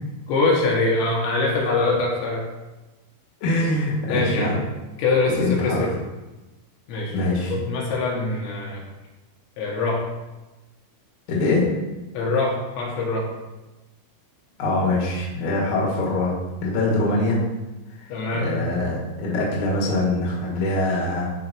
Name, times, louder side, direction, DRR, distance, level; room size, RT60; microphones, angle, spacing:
voice 1, 0.3-2.5 4.1-4.6 5.0-5.9 6.9-7.2 7.5-8.8 9.6-10.1 12.1-13.3 18.1-18.6, left 3 dB, 75° left, -2 dB, 3.3 m, -23 dB
voice 2, 3.4-4.6 5.3-5.9 7.1-7.5 11.3-11.8 14.6-17.4 18.4-21.3, left 2 dB, 55° left, -4 dB, 2.2 m, -23 dB
13.5 x 4.5 x 3.0 m, 1.1 s
omnidirectional pair, 5.8 m